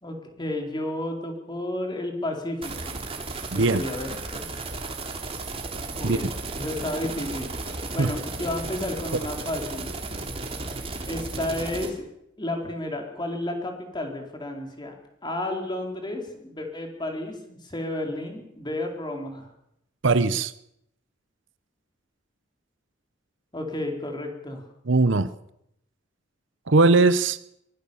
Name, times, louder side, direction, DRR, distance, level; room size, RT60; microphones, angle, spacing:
voice 1, 0.0-3.0 3.5-4.4 5.9-6.3 6.6-10.0 11.0-12.1 12.4-15.0 15.2-19.5 23.5-24.6, left 1 dB, 25° left, 4.1 m, -32 dB
sound 1, 2.6-11.9, right 3 dB, 30° right, 3.4 m, -34 dB
voice 2, 3.5-3.8 6.0-6.2 8.0-8.1 20.0-20.5 24.9-25.3 26.7-27.4, right 3 dB, 70° right, 0.8 m, -19 dB
23.5 x 17.5 x 7.0 m
head